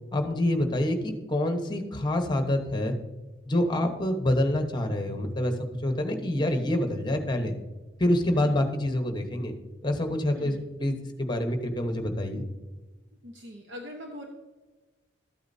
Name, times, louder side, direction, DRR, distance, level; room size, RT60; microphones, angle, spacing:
voice 1, 0.1-3.0 3.5-5.5 5.8-7.6 8.0-9.5 9.8-12.4, left 1 dB, 25° left, 6 dB, 1.0 m, -27 dB
voice 2, 8.3-8.7 10.4-10.6 13.2-14.3, left 1 dB, 65° right, 2 dB, 1.0 m, -42 dB
13.5 x 8.7 x 2.7 m, 1.2 s
head